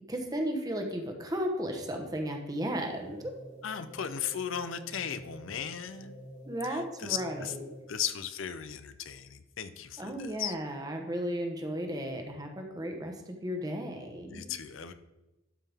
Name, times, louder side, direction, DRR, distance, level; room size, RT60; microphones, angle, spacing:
voice 1, 0.1-3.6 6.4-7.6 10.0-14.5, equal, 20° right, 3 dB, 1.0 m, -35 dB
sound 1, 2.7-8.1, equal, 35° left, 2.0 m, -49 dB
voice 2, 3.6-6.1 6.7-7.5 7.9-10.5 14.3-14.9, left 8 dB, 70° left, 11 dB, 0.5 m, -36 dB
12.0 x 5.5 x 3.5 m, 1.0 s
head